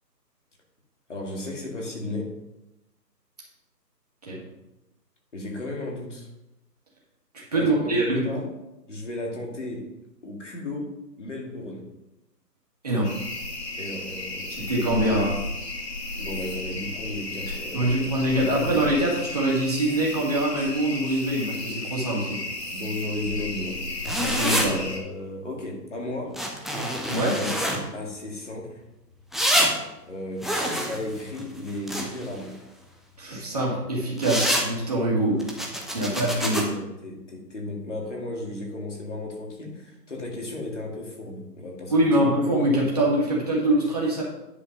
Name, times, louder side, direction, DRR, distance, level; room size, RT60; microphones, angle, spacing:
voice 1, 1.1-2.4 5.3-6.3 7.5-8.4 8.9-9.9 10.2-11.9 13.8-14.7 16.2-18.1 18.6-18.8 22.1-22.3 22.7-24.2 24.7-26.4 27.4-28.8 30.1-32.6 36.0-42.1, left 2 dB, 45° left, -1 dB, 2.3 m, -35 dB
voice 2, 7.5-8.3 12.8-13.1 14.5-15.3 17.7-22.4 24.2-24.8 27.1-27.4 33.2-35.4 35.9-36.7 41.9-44.2, right 1 dB, 25° right, -4 dB, 1.9 m, -24 dB
sound 1, 13.0-25.0, left 2 dB, 70° left, 2.4 m, -33 dB
sound 2, 24.0-24.7 26.3-27.8 29.3-29.7 30.4-32.3 34.2-34.7 35.4-36.6, equal, ahead, 0.5 m, -26 dB
9.9 x 5.0 x 5.2 m, 0.92 s
hypercardioid pair, 180°, 50 cm